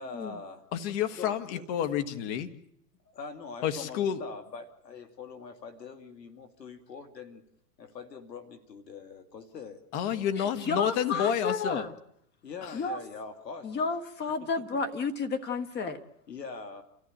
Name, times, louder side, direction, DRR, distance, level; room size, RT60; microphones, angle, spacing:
voice 1, 0.0-0.7 1.2-1.6 3.1-7.4 7.8-9.8 12.4-13.7 14.6-14.7 16.3-16.8, left 5 dB, 90° left, 2.6 m, -43 dB
voice 2, 0.7-2.5 3.6-4.2 9.9-11.9 12.6-12.7, left 9 dB, 45° left, 1.7 m, -30 dB
voice 3, 10.4-11.9 12.7-13.0 13.6-16.0, left 4 dB, 20° left, 1.5 m, -31 dB
28.5 x 14.5 x 8.9 m
hypercardioid pair, 120°, 48 cm